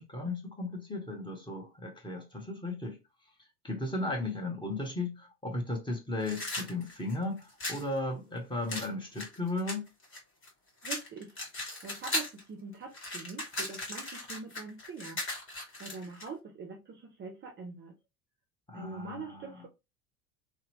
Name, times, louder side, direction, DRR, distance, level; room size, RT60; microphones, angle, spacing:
voice 1, 0.0-3.0 3.6-9.9 18.7-19.6, left 2 dB, 10° left, 1.0 m, -35 dB
sound 1, 6.2-7.9 8.7-10.5 10.8-12.4 12.7-16.3, left 1 dB, 25° left, 1.4 m, -37 dB
voice 2, 10.8-11.3 11.8-15.2 15.8-17.9 18.7-19.7, right 4 dB, 25° right, 0.5 m, -43 dB
2.8 x 2.0 x 2.9 m
hypercardioid pair, 70°, 44 cm